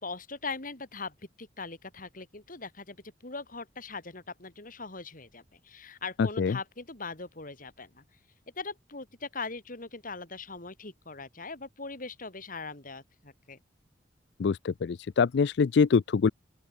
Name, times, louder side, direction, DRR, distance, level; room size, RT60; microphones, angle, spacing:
voice 1, 0.0-3.0 3.2-8.0 8.6-13.6, left 4 dB, 50° left, 3.9 m, -40 dB
voice 2, 14.4-16.3, left 5 dB, 65° left, 0.4 m, -24 dB
open air
head